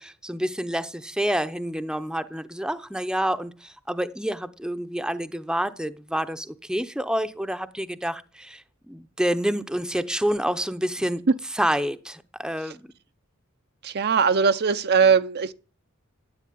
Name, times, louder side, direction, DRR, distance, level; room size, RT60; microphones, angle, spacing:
voice 1, 0.0-11.2 11.5-12.8, equal, 5° right, 0.7 m, -28 dB
voice 2, 13.8-15.5, right 6 dB, 50° right, 0.6 m, -20 dB
13.0 x 10.5 x 9.3 m
head